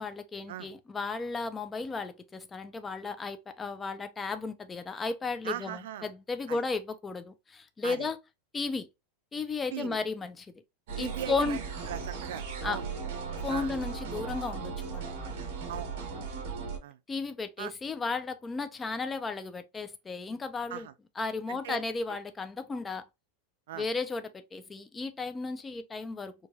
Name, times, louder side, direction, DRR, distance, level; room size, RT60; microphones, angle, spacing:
voice 1, 0.0-8.2 8.5-8.9 9.3-10.5 11.0-11.6 12.6-12.8 13.4-15.1 17.1-20.9 21.2-23.0 23.7-26.3, left 4 dB, 10° left, 0.4 m, -34 dB
voice 2, 5.4-6.1 6.5-6.6 7.8-8.1 9.7-10.0 11.0-12.9 13.5-13.7 15.7-15.9 16.8-17.0 17.6-17.7 20.7-20.9 21.5-21.8 23.7-23.9, right 11 dB, 80° right, 0.4 m, -39 dB
sound 1, 10.9-16.8, right 5 dB, 60° right, 1.3 m, -37 dB
4.5 x 2.3 x 2.7 m
supercardioid pair, 165°, 0 cm